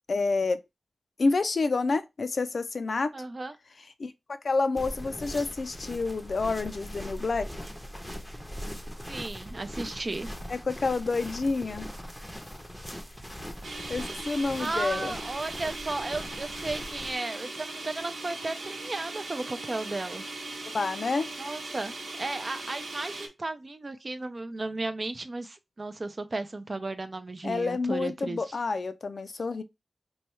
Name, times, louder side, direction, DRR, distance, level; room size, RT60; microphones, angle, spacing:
voice 1, 0.1-0.6 1.2-3.1 4.0-4.1 4.4-7.5 10.5-11.9 13.9-15.1 20.7-21.3 27.4-29.6, left 3 dB, 65° left, 0.4 m, -28 dB
voice 2, 3.1-3.6 9.1-10.3 14.6-20.2 21.4-28.6, right 2 dB, 40° right, 0.5 m, -34 dB
sound 1, 4.8-17.1, equal, 5° left, 0.7 m, -41 dB
sound 2, 13.6-23.3, right 2 dB, 80° right, 1.0 m, -39 dB
3.1 x 2.3 x 4.3 m
wide cardioid pair, 100°, 0 cm